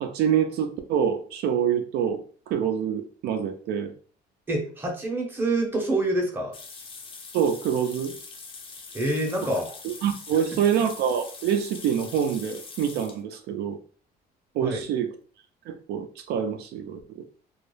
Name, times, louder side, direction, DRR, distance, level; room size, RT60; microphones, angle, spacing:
voice 1, 0.0-3.9 7.3-8.1 9.4-13.8 14.5-15.1 15.7-17.0, right 8 dB, 75° right, 6 dB, 0.4 m, -26 dB
voice 2, 4.5-6.6 8.9-9.7 14.6-14.8, right 1 dB, 10° right, 0 dB, 0.7 m, -26 dB
sound 1, 6.5-13.2, left 4 dB, 30° left, 0.4 m, -43 dB
2.3 x 2.0 x 3.1 m, 0.40 s
cardioid pair, 150°, 17 cm